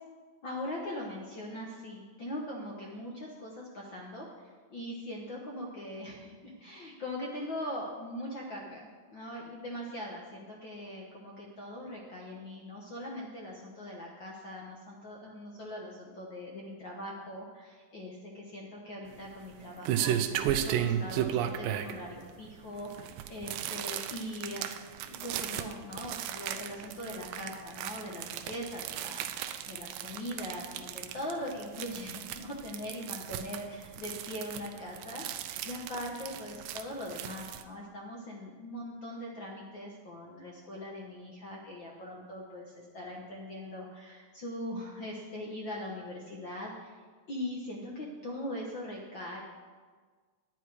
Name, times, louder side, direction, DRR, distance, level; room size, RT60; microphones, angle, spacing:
voice 1, 0.4-24.7 25.0-47.0 47.3-49.4, left 1 dB, 75° left, -2 dB, 1.1 m, -41 dB
sound 1, 19.1-37.6, right 10 dB, 85° right, 2.3 m, -35 dB
10.5 x 9.5 x 4.8 m, 1.5 s
omnidirectional pair, 3.9 m